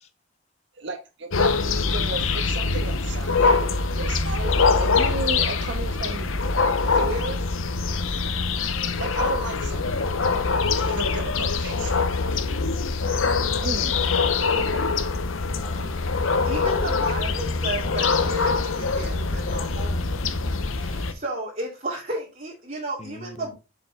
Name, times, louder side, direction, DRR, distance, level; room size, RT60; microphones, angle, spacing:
voice 1, 0.8-3.7 3.9-6.3 6.9-7.4 9.0-10.1 10.9-12.0 13.6-13.9 14.6-14.9, right 3 dB, 55° right, 1.4 m, -34 dB
sound 1, 1.3-21.1, left 4 dB, 75° left, 0.8 m, -24 dB
voice 2, 13.1-14.1 15.6-16.0 23.0-23.5, left 2 dB, 30° left, 0.5 m, -42 dB
voice 3, 16.4-20.0 20.6-23.6, right 1 dB, 35° right, 2.5 m, -33 dB
7.4 x 5.3 x 3.3 m
head